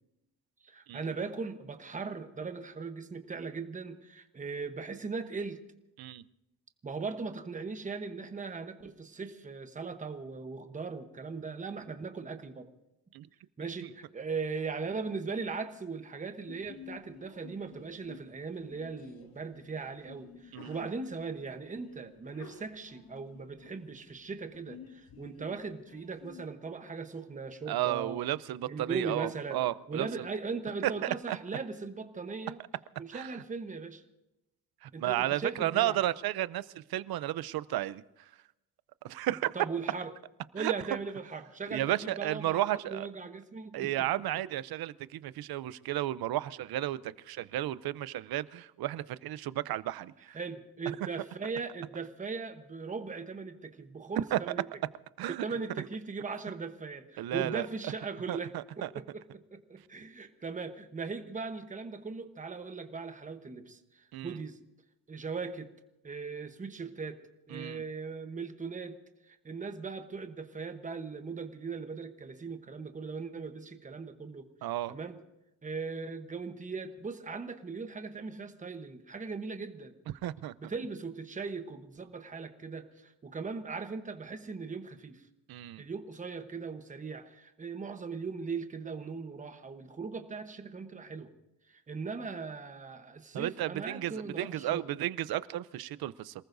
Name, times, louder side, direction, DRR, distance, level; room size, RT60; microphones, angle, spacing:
voice 1, 0.6-5.6 6.8-12.7 13.6-28.3 28.7-29.6 29.9-32.6 33.0-34.0 34.9-36.0 39.5-40.1 40.5-42.6 42.9-44.1 50.3-54.6 55.4-64.6 65.1-65.7 66.0-67.2 67.5-69.0 69.3-74.5 74.9-75.2 75.6-79.9 80.6-85.2 85.8-91.3 91.7-94.8, right 4 dB, 20° right, 7 dB, 1.0 m, -39 dB
Sneeze, 16.4-26.4, left 7 dB, 90° left, 2.2 m, -53 dB
voice 2, 27.7-30.1 30.8-31.4 33.1-33.3 34.8-38.0 39.0-39.5 40.6-40.7 41.7-43.1 43.7-50.4 54.3-54.4 55.2-55.4 57.2-57.7 58.3-58.9 64.1-64.4 67.5-67.8 74.6-74.9 80.2-80.7 85.5-85.8 93.3-96.3, right 14 dB, 80° right, 17 dB, 0.7 m, -33 dB
27.5 x 19.5 x 2.7 m, 0.89 s
wide cardioid pair, 175°, 36 cm